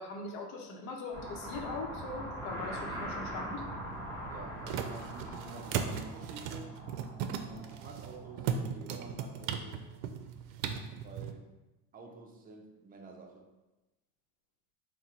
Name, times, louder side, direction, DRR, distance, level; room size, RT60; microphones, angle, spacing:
voice 1, 0.0-3.7, left 3 dB, 65° left, 3 dB, 0.9 m, -41 dB
sound 1, 1.1-8.6, equal, 5° left, 0.9 m, -42 dB
sound 2, 3.5-11.3, right 7 dB, 75° right, 0.5 m, -38 dB
voice 2, 4.3-6.8 7.4-9.9 11.0-11.6 11.9-13.5, right 3 dB, 20° right, 2 dB, 0.5 m, -50 dB
3.7 x 2.2 x 4.3 m, 1.0 s
supercardioid pair, 115°, 42 cm